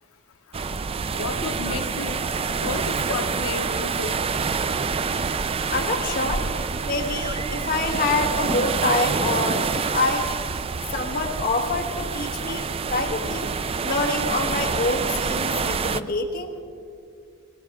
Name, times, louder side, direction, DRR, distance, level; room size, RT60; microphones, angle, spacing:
sound 1, 0.5-16.0, right 5 dB, 25° right, 0.3 m, -27 dB
voice 1, 1.1-4.2, left 4 dB, 80° left, 9 dB, 0.7 m, -33 dB
voice 2, 5.7-6.4 6.8-10.3 10.9-13.5 13.8-16.6, left 2 dB, 45° left, 3 dB, 1.2 m, -26 dB
20.0 x 19.0 x 3.5 m, 2.5 s
head